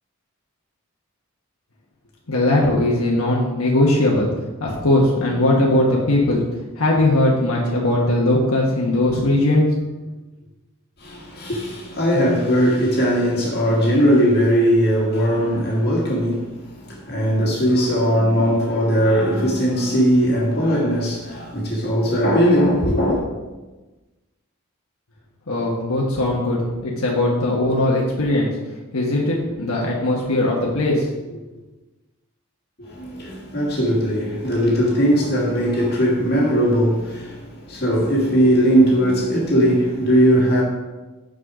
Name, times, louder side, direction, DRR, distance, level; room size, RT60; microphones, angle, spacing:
voice 1, 2.3-4.3 4.6-6.4 6.8-9.7 25.5-28.5 28.9-31.4, left 1 dB, 80° left, 1.3 m, -19 dB
voice 2, 11.0-23.3 32.8-40.6, equal, 50° left, 1.8 m, -19 dB
6.6 x 6.4 x 4.8 m
head